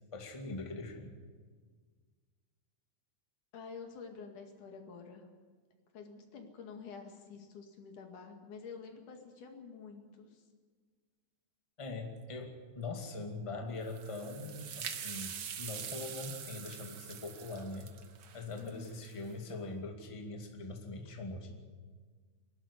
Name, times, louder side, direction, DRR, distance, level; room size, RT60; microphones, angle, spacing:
voice 1, 0.1-1.1 11.8-17.9 18.3-21.5, left 2 dB, 10° left, 3 dB, 1.7 m, -42 dB
voice 2, 3.5-5.3 5.9-10.4 18.6-19.0, left 5 dB, 85° left, 4 dB, 3.7 m, -49 dB
sound 1, 13.8-19.3, right 8 dB, 65° right, 1.1 m, -44 dB
23.5 x 12.0 x 9.8 m, 1.6 s
omnidirectional pair, 3.5 m